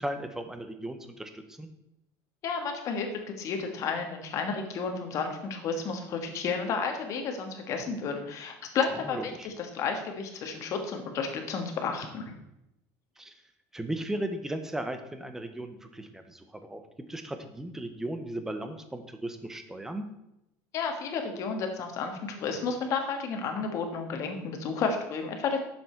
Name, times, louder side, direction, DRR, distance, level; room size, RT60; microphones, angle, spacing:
voice 1, 0.0-1.7 9.0-9.5 13.2-13.4 13.7-16.8 17.1-20.1, right 1 dB, 5° right, 8 dB, 0.8 m, -36 dB
voice 2, 2.4-12.2 20.7-25.6, left 5 dB, 40° left, 4 dB, 1.5 m, -32 dB
9.9 x 7.2 x 4.4 m, 0.87 s
cardioid pair, 165°, 8 cm